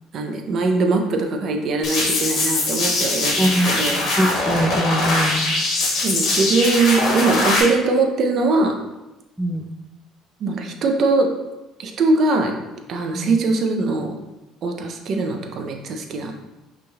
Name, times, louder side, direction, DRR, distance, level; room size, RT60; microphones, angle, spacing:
voice 1, 0.1-4.1 6.0-8.8 10.4-11.3 11.8-12.5 12.9-14.2 14.6-16.3, right 3 dB, 50° right, 4 dB, 0.6 m, -21 dB
sound 1, 1.8-7.6, left 2 dB, 60° left, 1.4 m, -22 dB
voice 2, 3.4-5.6 9.4-9.7 13.1-13.4, equal, 5° right, 5 dB, 0.4 m, -23 dB
5.7 x 3.2 x 2.4 m, 1.0 s
cardioid pair, 105°, 0 cm